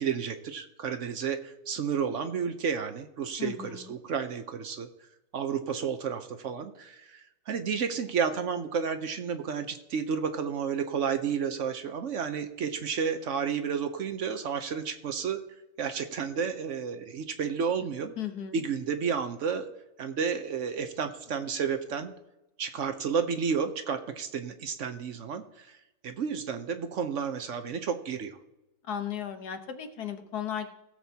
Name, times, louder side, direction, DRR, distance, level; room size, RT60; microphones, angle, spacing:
voice 1, 0.0-4.9 5.3-15.4 15.8-18.1 18.5-19.7 20.0-22.1 22.6-25.8 26.0-28.4, right 6 dB, 60° right, 8 dB, 1.0 m, -31 dB
voice 2, 3.4-3.8 18.2-18.6 28.9-30.7, left 9 dB, 85° left, 7 dB, 1.6 m, -35 dB
17.5 x 7.6 x 2.8 m, 0.93 s
omnidirectional pair, 1.6 m